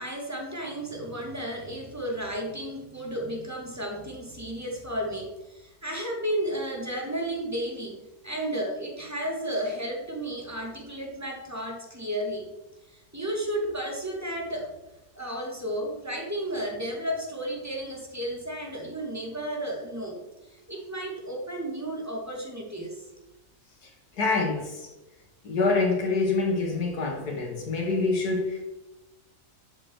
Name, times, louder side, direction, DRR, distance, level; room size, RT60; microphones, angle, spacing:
voice 1, 0.0-12.5 12.9-14.7 15.2-23.0, right 1 dB, 10° right, 0 dB, 2.1 m, -33 dB
voice 2, 24.2-24.9 25.4-28.7, left 3 dB, 85° left, 2 dB, 2.6 m, -26 dB
11.5 x 7.6 x 4.6 m, 1.0 s
omnidirectional pair, 1.6 m